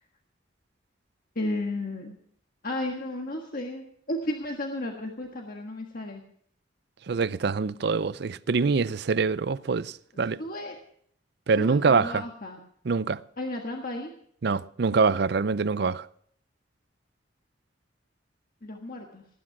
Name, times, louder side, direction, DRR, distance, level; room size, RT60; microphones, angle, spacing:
voice 1, 1.3-2.2 2.6-6.2 10.1-10.8 11.5-12.6 13.4-14.1 18.6-19.2, left 1 dB, 50° left, 1.5 m, -33 dB
voice 2, 7.1-10.4 11.5-12.2 12.9-13.2 14.4-16.1, right 4 dB, 60° right, 0.5 m, -25 dB
18.5 x 9.9 x 5.9 m
head